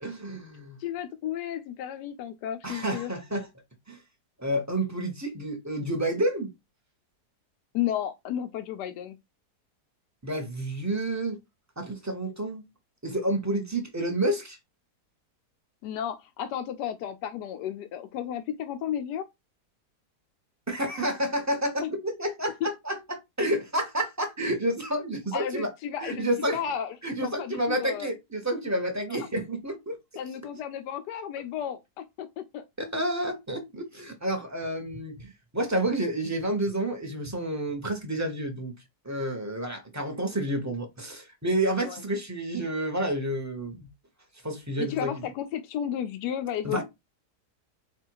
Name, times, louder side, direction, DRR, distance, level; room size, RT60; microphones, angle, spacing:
voice 1, 0.0-0.8 2.6-3.5 3.9-4.0 4.4-6.5 10.2-11.4 11.8-12.7 13.0-14.6 20.7-25.7 26.0-26.6 27.0-30.0 32.8-38.7 39.0-43.9 44.4-45.2 46.6-46.8, right 1 dB, 15° right, 0.8 m, -30 dB
voice 2, 0.8-3.1 7.7-9.2 15.8-19.2 21.8-21.9 22.6-22.7 25.3-26.9 27.2-28.1 30.2-32.6 41.8-42.0 44.8-46.8, left 10 dB, 85° left, 1.2 m, -33 dB
4.6 x 2.4 x 4.6 m
omnidirectional pair, 1.7 m